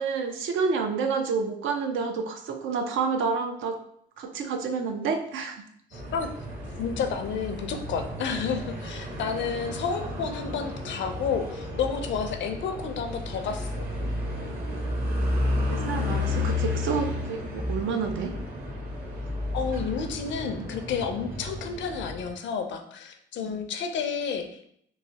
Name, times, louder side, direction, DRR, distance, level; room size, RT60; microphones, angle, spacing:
voice 1, 0.0-3.8 4.2-5.6 15.7-18.3 20.5-20.7 23.4-23.5, right 5 dB, 80° right, 5 dB, 0.5 m, -29 dB
voice 2, 5.9-6.3 6.8-13.9 19.5-24.7, left 6 dB, 70° left, 6 dB, 0.5 m, -31 dB
sound 1, 5.9-22.3, left 1 dB, 50° right, 0.9 m, -32 dB
3.1 x 2.6 x 2.8 m, 0.68 s
cardioid pair, 90°, 20 cm